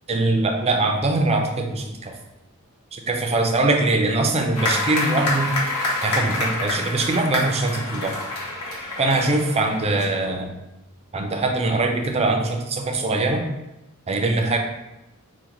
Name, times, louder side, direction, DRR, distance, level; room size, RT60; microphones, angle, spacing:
voice 1, 0.1-2.1 2.9-5.5 6.0-8.1 9.0-10.5 11.1-13.4 14.1-14.6, right 2 dB, 30° right, 2 dB, 0.5 m, -22 dB
sound 1, 4.5-10.0, left 2 dB, 80° left, 1.0 m, -27 dB
5.0 x 2.2 x 2.9 m, 0.93 s
head